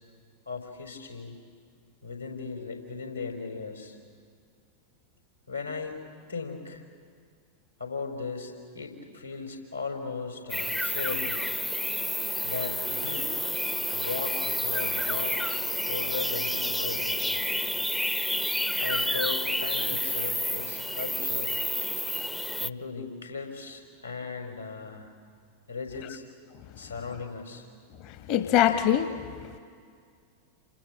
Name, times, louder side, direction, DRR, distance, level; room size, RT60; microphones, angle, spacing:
voice 1, 0.4-1.4 2.0-4.0 5.5-6.0 6.3-6.8 7.8-11.3 12.4-13.3 13.9-17.5 18.8-21.5 22.6-25.1 25.7-26.2 26.8-27.7, left 4 dB, 85° left, 2 dB, 4.8 m, -37 dB
sound 1, 10.5-22.7, left 1 dB, 5° left, 0.7 m, -29 dB
voice 2, 28.0-29.6, left 10 dB, 45° left, 9 dB, 1.3 m, -25 dB
29.0 x 26.5 x 7.6 m, 2.1 s
figure-of-eight pair, 90°, 0 cm